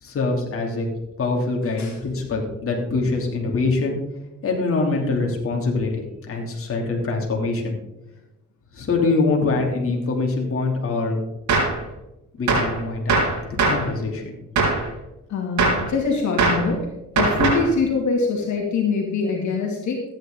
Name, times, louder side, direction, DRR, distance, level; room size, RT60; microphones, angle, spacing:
voice 1, 0.0-0.9 1.2-3.9 4.4-7.8 8.7-11.2 12.4-13.1 13.7-14.3, left 3 dB, 45° left, 0 dB, 3.0 m, -24 dB
Gunshot gunfire, 11.5-11.8 12.5-12.8 13.1-13.9 14.6-14.9 15.6-15.9 16.4-16.7 17.2-17.7, right 3 dB, 70° right, 3.3 m, -20 dB
voice 2, 15.3-16.9 17.1-20.0, left 4 dB, 70° left, 0 dB, 2.6 m, -23 dB
14.0 x 9.5 x 3.9 m, 0.94 s
cardioid pair, 90°, 30 cm